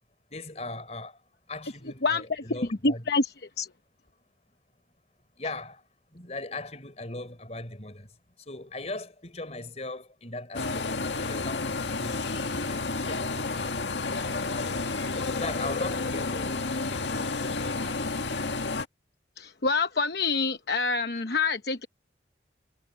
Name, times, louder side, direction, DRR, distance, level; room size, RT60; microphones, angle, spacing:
voice 1, 0.3-1.2 1.5-3.1 5.4-5.8 6.1-10.9 11.2-13.8 14.2-18.0, left 2 dB, 35° left, 4.2 m, -39 dB
voice 2, 2.0-2.4 2.8-3.7 19.4-21.9, left 3 dB, 60° left, 0.9 m, -27 dB
sound 1, 10.5-18.8, left 3 dB, 80° left, 1.8 m, -30 dB
head